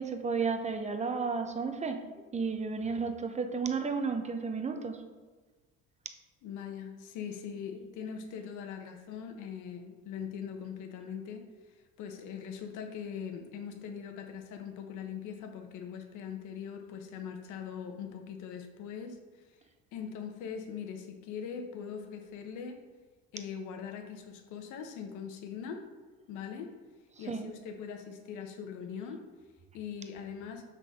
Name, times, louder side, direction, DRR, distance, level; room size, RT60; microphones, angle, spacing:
voice 1, 0.0-2.0 2.3-5.0 27.2-27.5, right 5 dB, 20° right, 6 dB, 0.9 m, -32 dB
voice 2, 6.4-11.4 12.0-19.2 19.9-22.8 23.3-25.8 26.3-26.7 27.2-29.2 29.7-30.6, left 7 dB, 75° left, 4 dB, 1.3 m, -41 dB
6.7 x 6.2 x 5.2 m, 1.3 s
cardioid pair, 110°, 31 cm